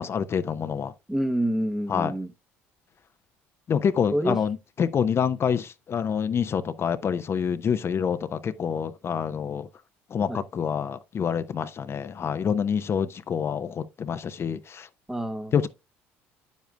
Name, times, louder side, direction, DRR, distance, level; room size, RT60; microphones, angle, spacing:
voice 1, 0.0-0.9 1.9-2.1 3.7-9.7 10.1-14.9 15.5-15.7, left 7 dB, 40° left, 0.6 m, -27 dB
voice 2, 1.1-2.3 4.1-4.4 10.3-10.4 15.1-15.5, right 1 dB, 5° right, 0.8 m, -27 dB
8.9 x 7.3 x 2.2 m
hypercardioid pair, 65°, 6 cm